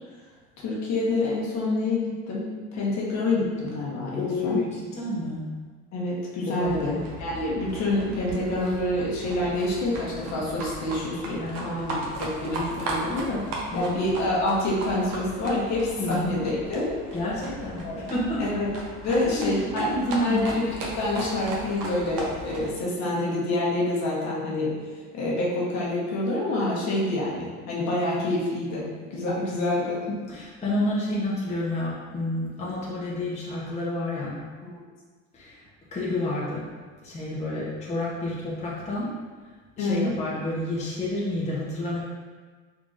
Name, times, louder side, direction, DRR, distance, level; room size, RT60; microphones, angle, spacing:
voice 1, 0.6-4.6 5.9-11.9 12.2-13.4 13.7-16.9 17.8-18.1 18.4-18.7 19.0-19.9 20.2-24.7 25.1-30.0 34.6-34.7 39.8-40.1, left 2 dB, 50° left, -5 dB, 1.1 m, -27 dB
voice 2, 4.2-5.5 6.5-7.0 11.4-11.6 13.7-13.9 16.0-16.2 17.1-18.4 19.0-20.5 29.2-29.3 30.1-34.4 35.3-35.6 35.9-36.7 37.0-39.1 39.8-42.0, left 1 dB, 20° left, -7 dB, 0.8 m, -29 dB
Livestock farm animals working animals, 6.6-22.7, right 2 dB, 75° right, 0.9 m, -37 dB
3.7 x 3.6 x 2.5 m, 1.5 s
supercardioid pair, 110°, 35 cm